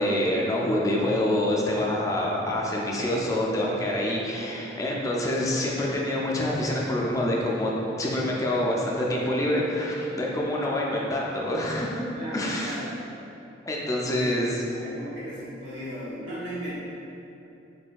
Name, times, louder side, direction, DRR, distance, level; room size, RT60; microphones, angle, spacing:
voice 1, 0.0-7.7 8.0-12.0 12.3-12.7 13.7-14.5, left 1 dB, 20° left, -3 dB, 0.4 m, -26 dB
voice 2, 12.1-12.9 14.0-14.4 14.7-16.8, equal, 75° right, -8 dB, 1.2 m, -37 dB
4.2 x 3.7 x 2.3 m, 2.8 s
head